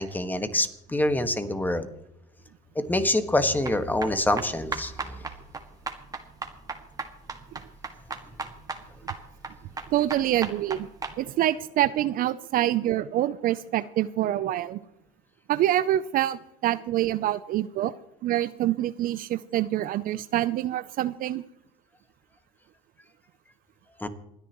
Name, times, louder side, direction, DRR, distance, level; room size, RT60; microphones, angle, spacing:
voice 1, 0.0-1.9 2.7-5.2 24.0-24.1, left 1 dB, 10° left, 9 dB, 1.6 m, -26 dB
sound 1, 3.6-11.2, right 4 dB, 20° right, 1.9 m, -36 dB
voice 2, 9.9-10.9 11.2-14.8 15.5-17.9 18.2-21.4, right 13 dB, 55° right, 15 dB, 0.5 m, -26 dB
28.0 x 10.0 x 3.1 m, 0.83 s
supercardioid pair, 85°, 18 cm